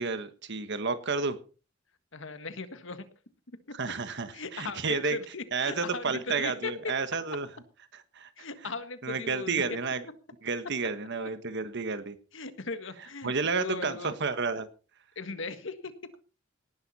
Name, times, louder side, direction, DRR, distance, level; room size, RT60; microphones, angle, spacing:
voice 1, 0.0-1.4 3.7-5.2 5.5-7.5 7.9-8.3 9.0-10.0 10.4-12.2 13.2-14.7, right 4 dB, 60° right, 11 dB, 1.4 m, -31 dB
voice 2, 2.1-3.0 4.3-6.7 8.4-9.6 10.0-10.1 12.3-14.1 15.2-15.9, left 4 dB, 70° left, 10 dB, 1.7 m, -38 dB
18.5 x 11.0 x 4.3 m, 0.36 s
head